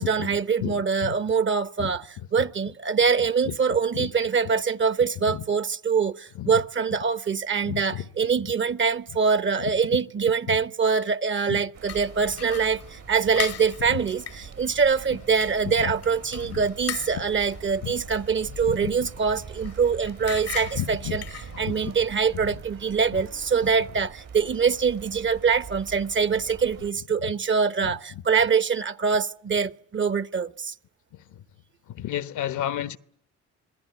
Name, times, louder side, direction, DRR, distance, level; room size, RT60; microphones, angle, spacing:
voice 1, 0.0-2.0 2.3-21.2 21.6-30.7, right 5 dB, 40° right, 0.9 m, -24 dB
voice 2, 0.6-1.1 1.8-1.9 3.4-3.5 3.9-4.1 5.3-5.4 6.4-6.5 7.7-8.1 9.6-9.7 10.5-10.6 11.5-11.6 13.9-14.0 15.6-15.9 16.4-16.6 17.1-17.2 17.8-17.9 18.7-19.1 20.7-21.2 21.5-21.9 22.3-22.4 27.2-27.3 27.8-28.2 31.3-31.4 31.9-33.0, left 11 dB, 80° left, 1.1 m, -32 dB
sound 1, 11.7-26.9, right 6 dB, 55° right, 1.6 m, -43 dB
sound 2, 11.9-21.9, left 9 dB, 55° left, 0.9 m, -40 dB
sound 3, 21.2-25.4, right 8 dB, 90° right, 4.0 m, -57 dB
26.5 x 17.5 x 9.5 m
supercardioid pair, 70°, 30 cm